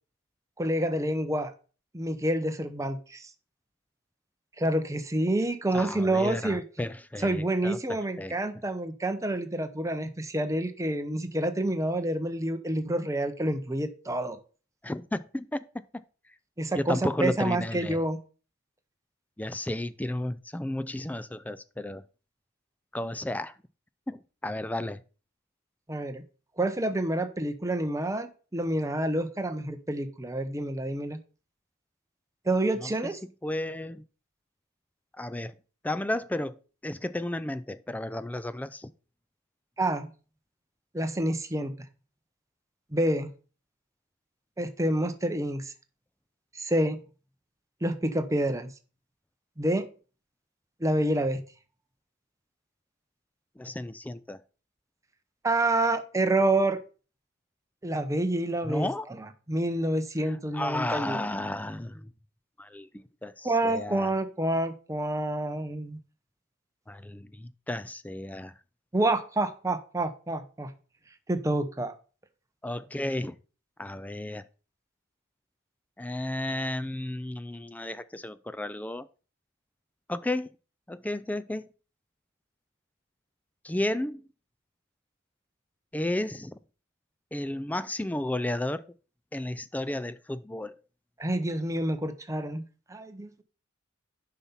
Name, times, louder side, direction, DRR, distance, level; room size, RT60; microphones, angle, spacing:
voice 1, 0.6-1.5 1.9-3.3 4.6-6.6 7.2-14.4 16.6-18.2 25.9-26.2 26.6-31.2 32.5-33.2 39.8-40.1 40.9-41.7 42.9-43.3 44.6-45.7 46.5-47.0 47.8-48.7 49.6-49.9 50.8-51.4 55.4-56.8 57.8-58.9 59.2-61.2 63.4-66.0 68.9-70.7 71.3-71.9 91.2-92.6 92.9-93.4, right 1 dB, 15° right, 0.7 m, -28 dB
voice 2, 5.7-7.8 8.2-8.3 14.8-16.0 16.7-18.0 19.4-22.0 22.9-23.5 24.1-25.0 32.8-32.9 33.4-34.0 35.2-35.5 35.8-38.9 53.6-54.4 58.6-59.1 60.3-62.1 62.6-64.1 66.9-68.5 72.6-73.4 73.8-74.4 76.0-79.1 80.1-80.5 80.9-81.7 83.6-84.2 85.9-86.6 87.3-88.8 89.3-90.8, left 1 dB, 5° left, 0.3 m, -33 dB
7.1 x 5.8 x 5.6 m
head